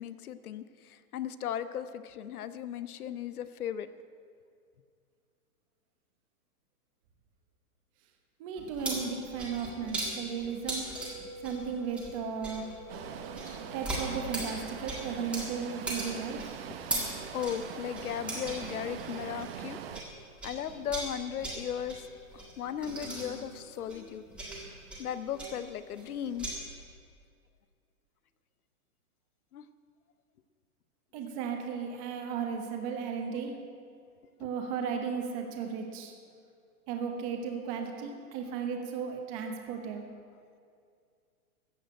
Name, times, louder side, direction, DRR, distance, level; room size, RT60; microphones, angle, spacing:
voice 1, 0.0-3.9 17.3-19.8 20.4-22.0 22.3-24.2 25.0-26.5 29.5-29.6 33.2-33.6 34.4-34.5, left 9 dB, 75° left, 13 dB, 0.8 m, -37 dB
voice 2, 8.4-10.9 11.4-12.7 13.7-16.5 31.1-33.6 34.4-36.1 36.9-40.0, right 6 dB, 25° right, 3 dB, 1.1 m, -35 dB
sound 1, 8.6-20.1 20.4-26.5, right 1 dB, ahead, 1.5 m, -39 dB
sound 2, 11.0-21.0, left 2 dB, 20° left, 1.6 m, -52 dB
sound 3, 12.9-20.0, right 8 dB, 40° right, 0.7 m, -42 dB
14.5 x 6.6 x 8.9 m, 2.3 s
hypercardioid pair, 165°, 44 cm